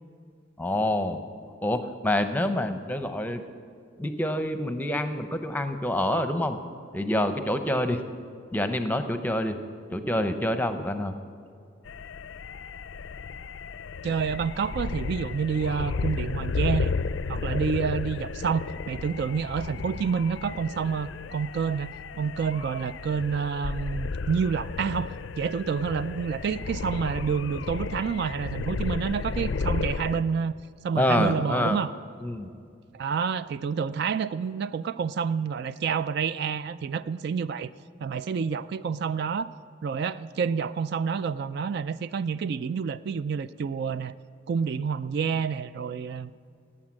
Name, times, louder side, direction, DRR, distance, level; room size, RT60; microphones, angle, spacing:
voice 1, 0.6-1.2 1.6-3.4 4.0-6.6 6.9-8.0 8.5-9.6 9.9-11.1 30.9-31.8 32.2-32.5, left 1 dB, 10° left, 8 dB, 0.7 m, -27 dB
sound 1, 11.9-30.2, left 4 dB, 65° left, 0.4 m, -33 dB
voice 2, 14.0-16.9 17.3-30.5 30.8-31.9 32.9-37.7 38.0-39.5 39.8-44.1 44.5-46.3, right 6 dB, 55° right, 14 dB, 0.3 m, -28 dB
17.5 x 8.8 x 7.5 m, 2.3 s
head